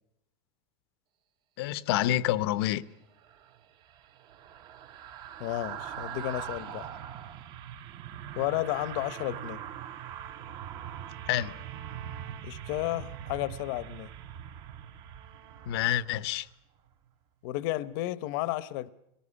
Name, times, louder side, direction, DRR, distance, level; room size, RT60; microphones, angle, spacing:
voice 1, 1.6-2.8 11.3-11.5 15.7-16.5, left 13 dB, 85° left, 0.9 m, -27 dB
sound 1, 3.2-16.5 16.9-17.1, right 10 dB, 35° right, 0.8 m, -42 dB
voice 2, 5.4-6.9 8.3-9.6 12.4-14.1 17.4-18.9, left 16 dB, 60° left, 0.8 m, -32 dB
Trumpet, 8.3-16.4, right 11 dB, 70° right, 3.5 m, -53 dB
23.0 x 18.5 x 9.8 m
cardioid pair, 180°, 13 cm